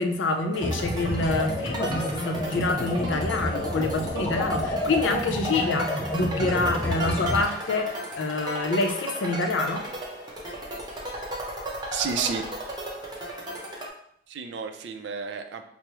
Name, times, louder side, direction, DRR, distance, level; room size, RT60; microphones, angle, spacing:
voice 1, 0.0-9.9, left 3 dB, 85° left, 4 dB, 0.5 m, -27 dB
sound 1, 0.5-13.9, right 1 dB, 25° right, 0.7 m, -35 dB
sound 2, 0.6-7.4, left 1 dB, 15° left, 0.4 m, -30 dB
voice 2, 11.9-12.4 14.3-15.6, right 6 dB, 70° right, 6 dB, 0.4 m, -30 dB
4.6 x 2.0 x 3.0 m, 0.69 s
head